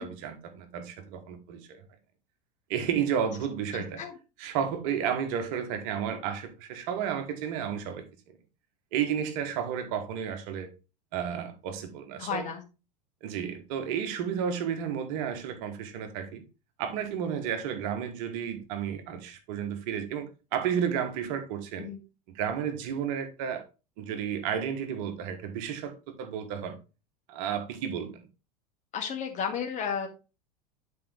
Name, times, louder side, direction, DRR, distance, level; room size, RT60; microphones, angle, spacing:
voice 1, 0.0-1.8 2.7-4.0 4.4-8.0 8.9-10.7 11.1-12.5 13.2-16.4 16.8-21.9 22.3-23.6 24.0-26.8 27.3-28.3, right 8 dB, 50° right, 1.4 m, -32 dB
voice 2, 3.7-4.1 12.2-12.6 21.8-22.0 28.9-30.1, left 7 dB, 35° left, 1.8 m, -33 dB
9.2 x 4.7 x 3.3 m
figure-of-eight pair, 80°, 21 cm